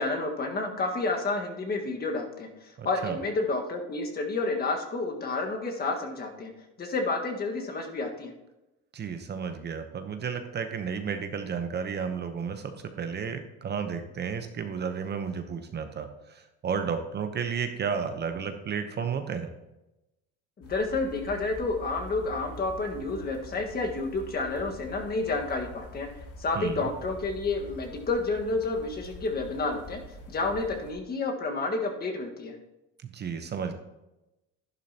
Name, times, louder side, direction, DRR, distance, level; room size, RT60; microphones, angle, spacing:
voice 1, 0.0-2.5 2.8-6.5 6.8-8.3 20.6-26.1 26.4-30.0 30.3-32.5, left 3 dB, 30° left, 3 dB, 1.6 m, -30 dB
voice 2, 2.8-3.2 8.9-19.5 26.6-26.9 33.0-33.8, right 6 dB, 35° right, 7 dB, 0.9 m, -32 dB
sound 1, 20.6-30.9, equal, 50° left, 2.5 m, -45 dB
11.0 x 11.0 x 2.9 m, 0.97 s
cardioid pair, 110°, 30 cm